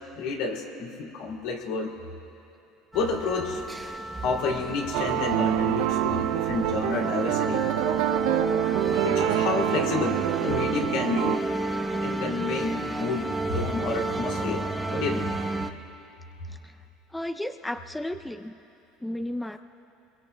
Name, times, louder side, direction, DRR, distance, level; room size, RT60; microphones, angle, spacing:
voice 1, 0.2-1.9 2.9-3.6 4.2-7.7 9.0-11.3 12.0-14.6 14.9-15.3, left 4 dB, 75° left, 0 dB, 2.6 m, -30 dB
sound 1, 2.9-15.7, right 2 dB, 10° right, 0.9 m, -31 dB
sound 2, 4.9-11.4, right 14 dB, 75° right, 0.4 m, -26 dB
voice 2, 17.1-18.5 19.0-19.6, left 1 dB, 5° left, 8 dB, 0.4 m, -33 dB
27.0 x 22.5 x 2.2 m, 2.9 s
supercardioid pair, 100°, 0 cm